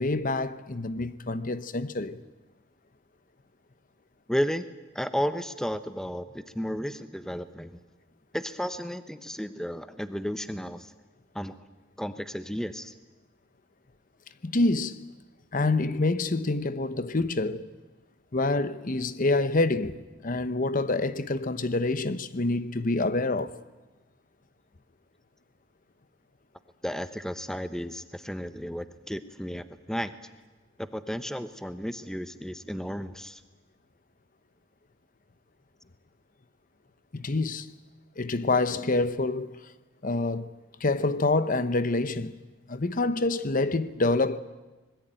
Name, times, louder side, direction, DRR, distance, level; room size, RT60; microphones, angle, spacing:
voice 1, 0.0-2.2 14.4-15.0 15.5-17.7 18.3-23.5 37.1-37.7 38.2-39.7 40.0-40.5 40.8-42.4 42.7-44.4, left 2 dB, 45° left, 0.9 m, -27 dB
voice 2, 4.3-4.6 4.9-7.8 8.3-10.9 11.3-11.6 12.0-12.9 26.8-30.1 30.8-33.4, equal, 5° left, 0.8 m, -33 dB
25.5 x 21.0 x 8.9 m
head